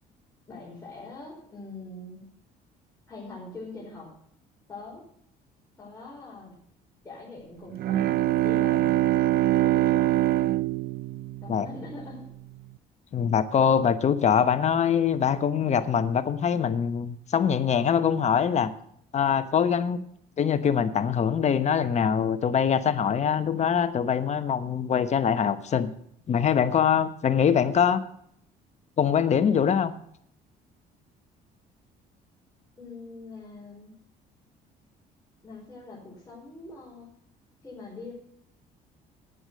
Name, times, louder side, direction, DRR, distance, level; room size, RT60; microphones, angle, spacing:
voice 1, 0.5-2.2 3.1-4.1 4.7-5.0 5.8-6.6 7.0-9.0 9.6-10.2 11.4-12.3 32.8-33.9 35.4-37.1 37.6-38.1, left 3 dB, 15° left, -6 dB, 5.0 m, -43 dB
Bowed string instrument, 7.7-12.3, right 15 dB, 65° right, 0.5 m, -24 dB
voice 2, 13.1-18.7 19.1-20.0 20.4-25.9 26.3-28.0 29.0-29.9, left 7 dB, 40° left, 11 dB, 1.0 m, -23 dB
10.0 x 9.2 x 6.4 m, 0.67 s
cardioid pair, 110°, 17 cm